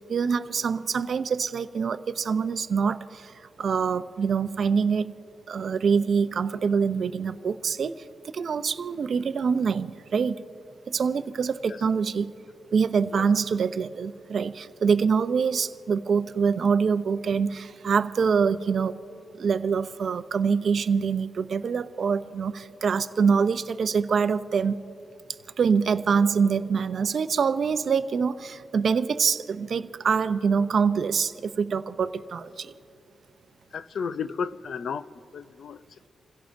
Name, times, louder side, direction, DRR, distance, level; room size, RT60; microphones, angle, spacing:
voice 1, 0.0-5.1 5.5-7.9 8.3-10.4 10.9-12.3 12.7-19.0 19.3-24.7 25.6-32.7, right 6 dB, 55° right, 12 dB, 0.5 m, -25 dB
voice 2, 33.7-35.1 35.3-36.1, left 6 dB, 65° left, 13 dB, 0.5 m, -33 dB
28.5 x 16.5 x 2.6 m, 2.6 s
cardioid pair, 110°, 0 cm